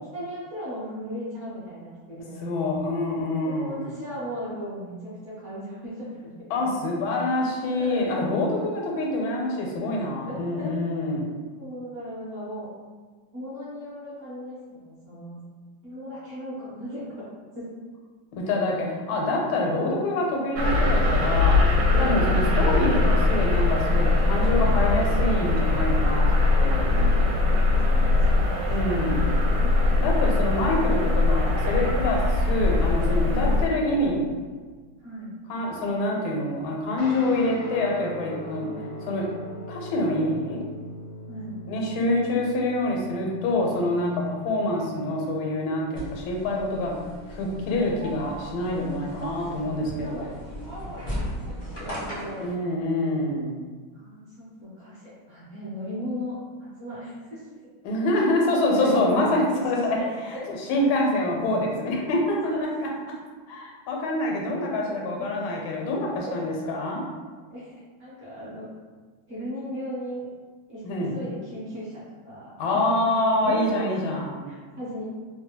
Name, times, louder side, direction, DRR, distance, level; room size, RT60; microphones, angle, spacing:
voice 1, 0.1-2.5 3.4-6.3 7.8-8.2 10.2-10.8 11.6-12.7 13.3-15.4 15.8-17.3 17.5-17.8 19.8-19.9 21.9-22.2 26.9-28.7 29.0-29.9 33.2-33.5 35.0-35.3 38.6-38.8 41.3-41.5 41.8-42.0 49.1-50.7 51.3-52.5 53.9-57.5 58.1-58.2 58.7-60.5 62.4-62.6 64.8-65.4 65.9-66.5 67.5-68.7 69.3-70.3 70.7-72.5 73.3-74.0 74.5-75.0, equal, 55° right, -8 dB, 0.8 m, -37 dB
voice 2, 2.4-3.8 6.5-11.2 18.3-21.6 22.0-26.3 26.6-26.9 28.7-29.3 30.0-34.3 35.5-38.7 39.1-39.3 39.7-40.6 41.7-46.9 47.3-50.3 52.4-53.6 57.8-60.0 60.2-60.4 60.7-62.7 63.5-67.0 70.8-71.2 72.6-74.5, left 1 dB, 85° left, -1 dB, 1.4 m, -26 dB
sound 1, 20.6-33.7, left 2 dB, 80° right, 1.3 m, -21 dB
Guitar, 37.0-45.8, equal, 70° left, 0.9 m, -41 dB
sound 2, 45.9-52.5, equal, 35° left, 0.4 m, -36 dB
3.3 x 2.2 x 2.8 m, 1.5 s
omnidirectional pair, 2.2 m